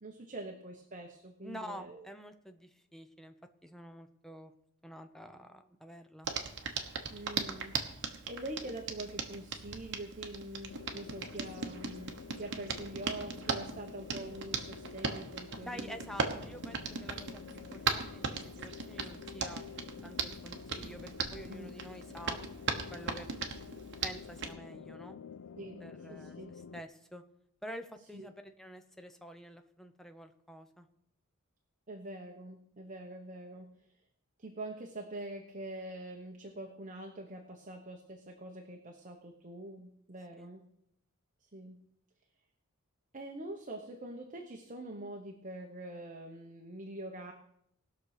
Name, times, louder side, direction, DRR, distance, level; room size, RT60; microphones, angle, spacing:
voice 1, 0.0-2.0 7.1-16.0 21.5-21.7 25.6-25.8 26.1-26.5 28.1-28.3 31.9-33.7 34.4-40.6 41.4-41.8 43.1-47.3, right 1 dB, 35° right, 3 dB, 1.1 m, -45 dB
voice 2, 1.4-3.3 3.6-4.5 4.8-6.3 15.7-19.6 20.0-22.4 22.9-23.3 24.0-25.2 25.8-27.2 27.6-30.9 40.4-40.5, equal, ahead, 7 dB, 0.8 m, -48 dB
Hands, 6.2-24.5, right 5 dB, 55° right, 1.2 m, -39 dB
sound 1, 10.7-26.8, left 6 dB, 70° left, 0.4 m, -49 dB
19.0 x 6.4 x 4.9 m, 0.73 s
head